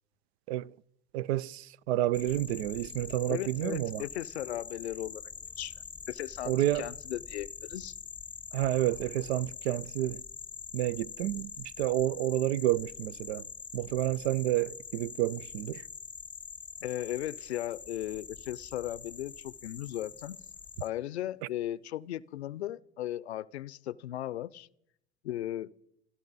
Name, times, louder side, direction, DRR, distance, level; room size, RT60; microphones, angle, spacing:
voice 1, 1.1-4.0 6.5-6.9 8.5-10.2 10.7-13.5 13.7-15.8, right 14 dB, 80° right, 0.5 m, -30 dB
sound 1, 2.1-20.9, left 6 dB, 15° left, 0.8 m, -45 dB
voice 2, 3.3-5.2 5.6-5.7 6.1-8.0 16.8-20.4 20.8-24.7 25.2-25.7, left 13 dB, 90° left, 0.5 m, -37 dB
28.5 x 12.0 x 4.0 m
hypercardioid pair, 70°, 32 cm